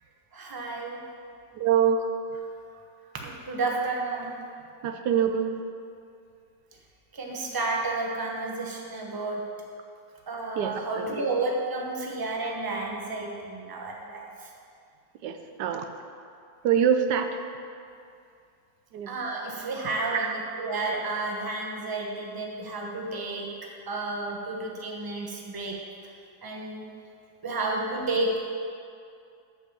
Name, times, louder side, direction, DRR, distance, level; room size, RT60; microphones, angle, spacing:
voice 1, 0.3-1.0 3.2-4.3 7.1-9.5 10.3-14.5 19.1-23.5 23.9-25.8 26.4-26.8 27.4-28.4, right 2 dB, 15° right, -1 dB, 0.9 m, -31 dB
voice 2, 1.6-2.1 4.8-5.6 10.6-11.1 15.2-15.9 16.6-17.3 18.9-19.1 20.1-20.4, right 8 dB, 80° right, 6 dB, 1.2 m, -25 dB
8.1 x 7.1 x 6.9 m, 2.4 s
omnidirectional pair, 1.8 m